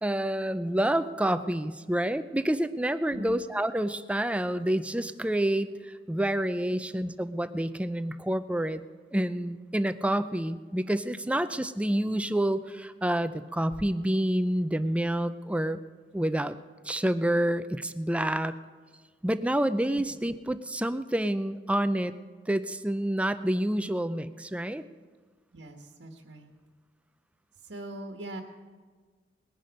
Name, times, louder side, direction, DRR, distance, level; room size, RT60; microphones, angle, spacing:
voice 1, 0.0-8.8 9.1-15.8 16.1-16.6 16.8-18.5 19.2-22.1 22.5-24.8, right 1 dB, 5° right, 12 dB, 0.4 m, -28 dB
voice 2, 25.5-26.5 27.6-28.4, right 1 dB, 80° right, 2 dB, 1.4 m, -41 dB
20.0 x 10.5 x 5.3 m, 1.5 s
head